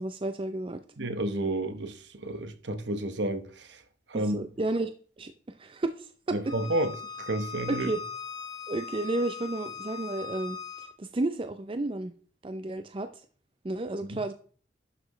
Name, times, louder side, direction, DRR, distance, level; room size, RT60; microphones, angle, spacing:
voice 1, 0.0-0.8 4.1-4.9 5.2-6.4 7.7-8.0 8.7-12.1 12.4-13.2 13.6-14.3, right 2 dB, 30° right, 0.5 m, -32 dB
voice 2, 1.0-3.8 4.1-4.4 6.3-6.9 7.2-7.9 14.1-14.2, right 1 dB, 65° right, 1.1 m, -31 dB
Bowed string instrument, 6.4-10.9, left 6 dB, 25° left, 1.2 m, -40 dB
11.5 x 6.0 x 3.2 m
head